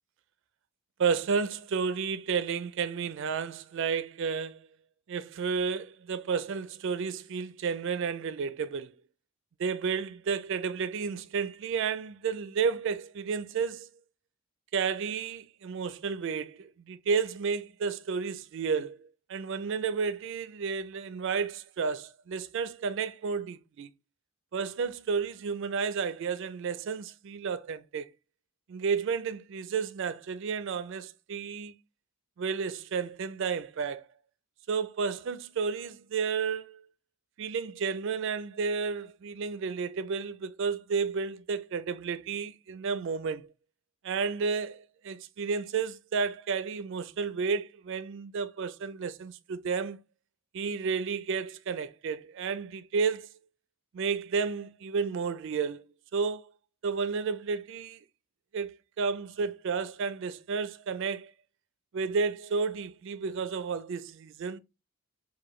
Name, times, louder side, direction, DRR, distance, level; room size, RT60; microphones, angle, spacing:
voice 1, 1.0-4.6 5.1-8.9 9.6-13.9 14.7-23.9 24.5-28.1 28.7-31.7 32.4-34.1 34.7-36.8 37.4-43.5 44.0-50.0 50.5-53.3 53.9-55.9 56.1-56.4 56.8-58.0 58.5-61.3 61.9-64.6, right 5 dB, 60° right, 0.4 m, -32 dB
6.6 x 2.2 x 3.1 m
head